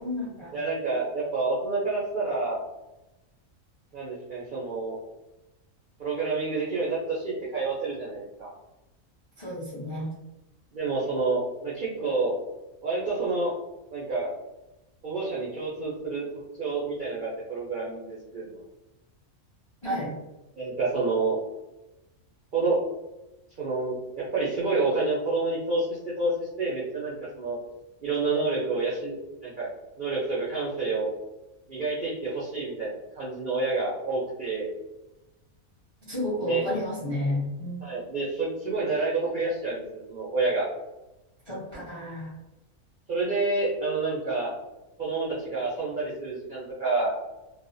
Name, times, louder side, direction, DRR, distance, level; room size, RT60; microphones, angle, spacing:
voice 1, 0.0-0.6 9.4-10.1 19.8-20.1 36.0-37.8 41.5-42.3, left 1 dB, 35° left, -7 dB, 0.5 m, -31 dB
voice 2, 0.5-2.6 3.9-5.0 6.0-8.5 10.7-12.3 12.8-13.5 13.9-14.3 15.0-16.2 16.6-18.6 20.6-21.4 22.5-22.8 23.6-27.6 28.0-29.2 29.4-29.7 30.0-31.1 31.7-34.7 36.4-36.6 37.8-40.7 43.1-44.5 45.0-47.1, right 3 dB, 60° right, -6 dB, 0.5 m, -28 dB
2.4 x 2.1 x 2.5 m, 0.97 s
omnidirectional pair, 1.5 m